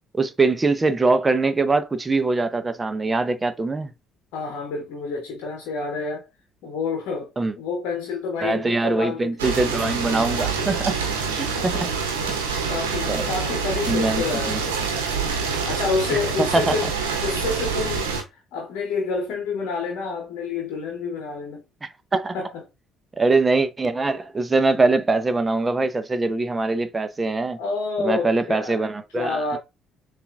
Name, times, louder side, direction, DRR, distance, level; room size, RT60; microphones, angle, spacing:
voice 1, 0.1-3.9 7.4-7.5 8.4-11.0 11.4-11.9 12.3-12.4 13.1-13.3 13.9-14.6 16.1-16.8 21.8-22.3 23.2-27.6 28.0-29.4, right 3 dB, 25° right, 0.7 m, -23 dB
voice 2, 4.3-6.3 6.6-9.5 11.6-11.9 12.4-14.8 15.6-16.9 17.2-21.6 22.3-22.6 27.6-28.9 29.1-29.6, left 4 dB, 65° left, 0.9 m, -29 dB
sound 1, 9.4-18.2, right 5 dB, 80° right, 1.0 m, -26 dB
6.8 x 2.5 x 2.4 m
figure-of-eight pair, 50°, 0 cm